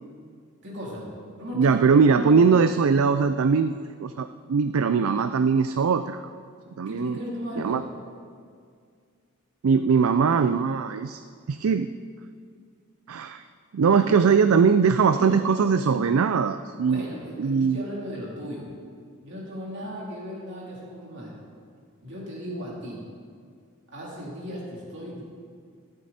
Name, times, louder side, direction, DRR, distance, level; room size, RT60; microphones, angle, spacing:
voice 1, 0.6-1.1 1.4-1.8 2.1-2.5 6.7-7.9 13.8-14.2 15.1-15.4 16.8-18.7 19.2-21.4 22.0-23.0 23.9-25.2, equal, 55° right, -4 dB, 3.4 m, -36 dB
voice 2, 1.5-6.3 6.8-7.2 7.6-7.8 9.6-11.2 11.5-11.9 13.1-13.4 13.7-17.0 17.4-17.8, right 5 dB, 70° right, 10 dB, 0.4 m, -21 dB
14.0 x 12.0 x 4.2 m, 2.1 s
head